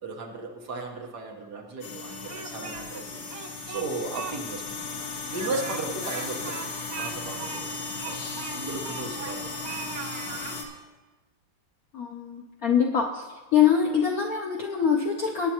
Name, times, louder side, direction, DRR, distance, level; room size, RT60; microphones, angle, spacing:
voice 1, 0.0-3.2 3.7-6.7 6.9-7.8 8.0-9.5 10.1-10.3, right 3 dB, 55° right, 1 dB, 1.6 m, -36 dB
sound 1, 1.8-10.6, left 4 dB, 90° left, 2.3 m, -36 dB
Speech, 2.1-3.0 3.3-4.4 4.7-4.8 5.3-9.4 9.6-10.6, right 6 dB, 80° right, 0.8 m, -39 dB
voice 2, 11.9-13.2 13.5-15.5, left 7 dB, 65° left, 0 dB, 0.9 m, -24 dB
19.0 x 8.8 x 2.9 m, 1.2 s
omnidirectional pair, 2.3 m